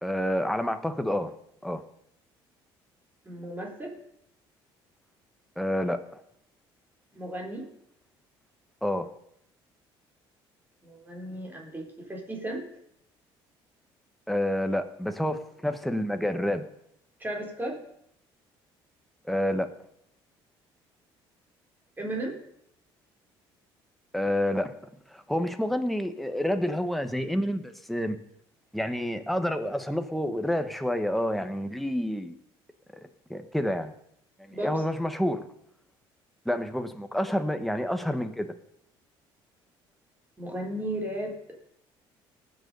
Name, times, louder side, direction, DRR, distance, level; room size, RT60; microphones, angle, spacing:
voice 1, 0.0-1.3 1.6-1.8 5.6-6.2 8.8-9.1 14.3-16.7 19.2-19.7 24.1-24.7 25.1-28.2 28.7-32.4 33.3-33.9 34.4-35.5 36.4-38.5, left 1 dB, ahead, 8 dB, 1.3 m, -28 dB
voice 2, 3.2-3.9 7.1-7.7 10.8-12.6 17.2-17.8 22.0-22.4 34.5-34.8 40.4-41.6, right 1 dB, 20° right, 0 dB, 3.9 m, -35 dB
18.5 x 6.6 x 5.4 m, 0.74 s
cardioid pair, 90°, 10 cm